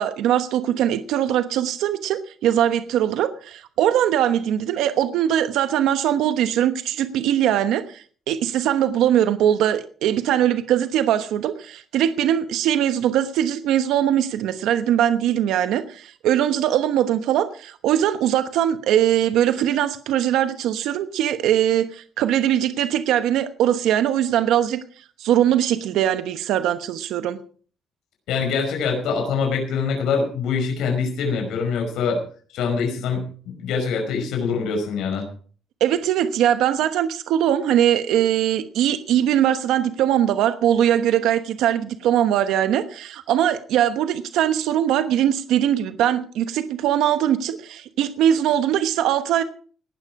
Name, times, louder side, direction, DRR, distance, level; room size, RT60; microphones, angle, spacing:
voice 1, 0.0-27.4 35.8-49.4, right 10 dB, 80° right, 10 dB, 1.1 m, -21 dB
voice 2, 28.3-32.2 32.5-33.3 33.6-35.3, left 5 dB, 80° left, 3 dB, 5.4 m, -24 dB
18.0 x 12.0 x 4.8 m, 0.43 s
cardioid pair, 155°, 0 cm